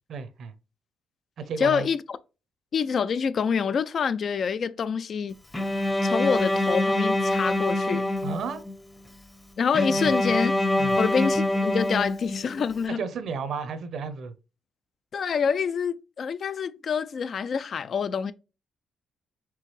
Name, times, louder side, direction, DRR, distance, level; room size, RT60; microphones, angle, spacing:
voice 1, 0.1-0.5 1.4-1.9 8.2-8.6 9.9-10.1 10.8-10.9 13.0-14.3, right 5 dB, 65° right, 0.7 m, -33 dB
voice 2, 1.6-2.2 2.7-5.4 6.0-8.1 9.6-10.6 11.0-13.0 15.1-18.3, left 6 dB, 50° left, 0.3 m, -26 dB
Bowed string instrument, 5.5-8.7 9.7-12.7, left 1 dB, 15° left, 0.7 m, -25 dB
4.6 x 3.5 x 3.2 m
cardioid pair, 90°, 0 cm